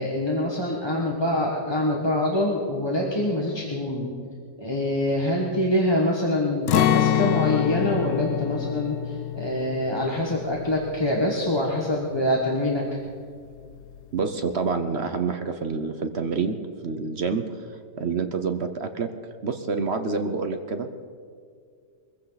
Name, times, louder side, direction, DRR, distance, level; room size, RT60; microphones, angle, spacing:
voice 1, 0.0-4.1 4.6-13.0, left 1 dB, 15° left, -2 dB, 1.5 m, -25 dB
Acoustic guitar, 6.7-12.6 12.9-13.1 13.5-14.0, left 12 dB, 75° left, 1.1 m, -26 dB
voice 2, 14.1-16.6 16.8-19.1 19.4-21.1, right 4 dB, 50° right, 8 dB, 0.9 m, -28 dB
22.5 x 15.5 x 4.1 m, 2.2 s
omnidirectional pair, 1.9 m